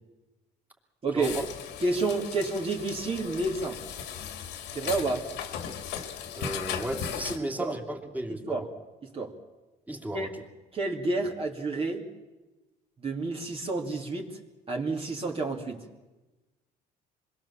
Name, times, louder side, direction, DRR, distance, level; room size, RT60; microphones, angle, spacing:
sound 1, 1.2-7.4, left 8 dB, 85° left, 2.5 m, -37 dB
voice 1, 1.8-3.8 4.7-5.2 7.4-7.7 8.3-8.7 9.0-9.3 10.1-10.3 10.7-12.0 13.0-14.4 14.7-15.8, right 3 dB, 35° right, 0 dB, 2.9 m, -30 dB
voice 2, 6.4-8.6 9.9-10.4, right 1 dB, 10° right, 2 dB, 3.0 m, -34 dB
26.5 x 21.5 x 7.4 m, 1.1 s
cardioid pair, 110°, 17 cm